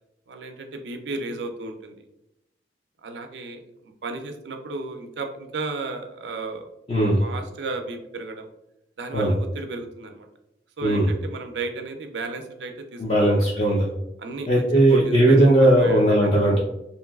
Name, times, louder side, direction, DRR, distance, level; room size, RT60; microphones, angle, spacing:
voice 1, 0.3-2.1 3.0-6.6 7.2-8.5 9.0-10.3 10.8-13.4 14.2-14.6 14.9-16.3, right 3 dB, 85° right, 5 dB, 0.4 m, -34 dB
voice 2, 6.9-7.2 9.1-9.3 10.8-11.1 13.0-13.9 14.5-16.6, right 1 dB, 35° left, -4 dB, 0.4 m, -18 dB
3.0 x 2.6 x 2.3 m, 0.87 s
head